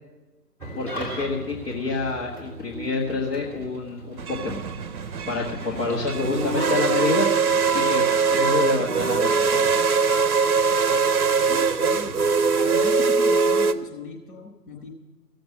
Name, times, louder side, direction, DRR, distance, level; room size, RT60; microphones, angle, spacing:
Engine starting / Idling, 0.6-11.2, right 1 dB, 5° left, 2.9 m, -42 dB
voice 1, 0.8-4.7 5.3-7.4 7.7-8.0 8.3-9.7, left 3 dB, 35° left, -5 dB, 1.8 m, -27 dB
sound 1, 4.2-13.7, right 5 dB, 60° right, 0.9 m, -22 dB
voice 2, 11.5-12.2 12.5-14.9, left 4 dB, 60° left, 1 dB, 6.3 m, -38 dB
17.0 x 7.8 x 7.5 m, 1.2 s
figure-of-eight pair, 145°, 50 cm